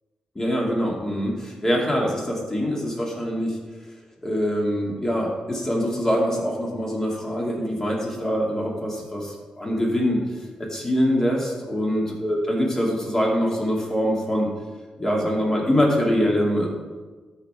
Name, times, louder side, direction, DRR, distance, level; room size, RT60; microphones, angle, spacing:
voice 1, 0.3-3.6 4.2-14.5 15.0-16.7, equal, 25° left, -2 dB, 2.3 m, -24 dB
13.0 x 5.2 x 3.5 m, 1.3 s
cardioid pair, 70°, 2 cm